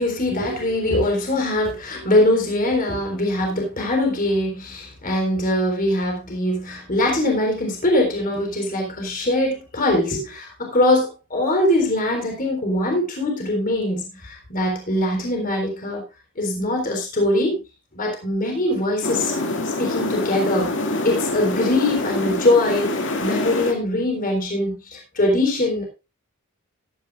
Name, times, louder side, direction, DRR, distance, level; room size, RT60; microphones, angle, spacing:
voice 1, 0.0-16.0 16.4-17.6 17.9-19.3 19.6-20.7 21.0-22.9 23.2-25.8, left 1 dB, 40° left, 2 dB, 3.7 m, -22 dB
sound 1, 19.0-23.7, left 2 dB, 60° left, 2.3 m, -25 dB
15.0 x 12.5 x 2.5 m, 0.28 s
head